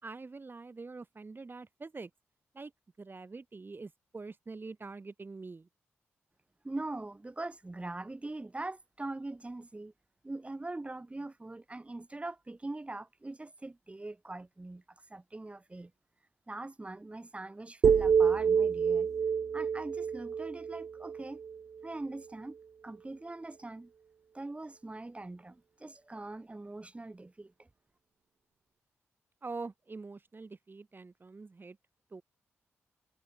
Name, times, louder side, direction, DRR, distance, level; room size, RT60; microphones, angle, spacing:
voice 1, 0.0-2.1 2.5-2.7 3.0-5.7 29.4-31.8 32.1-32.2, right 3 dB, 40° right, 3.0 m, -45 dB
voice 2, 6.6-9.9 10.2-14.8 15.1-15.9 16.5-19.1 19.5-21.4 21.8-22.6 22.8-23.9 24.3-27.7, right 2 dB, 25° right, 1.2 m, -42 dB
sound 1, 17.8-21.9, right 6 dB, 55° right, 0.5 m, -28 dB
supercardioid pair, 45°, 5 cm